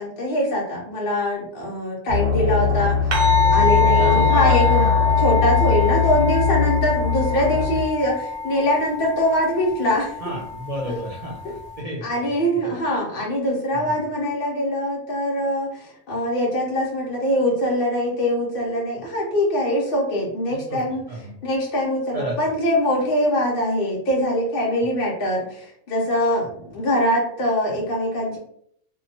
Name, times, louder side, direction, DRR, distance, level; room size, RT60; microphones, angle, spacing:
voice 1, 0.0-3.2 3.5-4.9 5.2-10.2 10.9-11.0 12.0-21.0 21.4-28.4, equal, 55° left, -3 dB, 0.7 m, -23 dB
sound 1, 2.1-7.8, left 6 dB, 25° left, 0.7 m, -21 dB
sound 2, 3.1-11.8, left 4 dB, 60° right, 0.7 m, -24 dB
voice 2, 4.0-4.7 10.2-12.8 13.7-14.0 20.5-21.4 22.1-22.4, right 1 dB, 80° right, -4 dB, 0.3 m, -32 dB
2.7 x 2.1 x 2.7 m, 0.66 s
omnidirectional pair, 1.2 m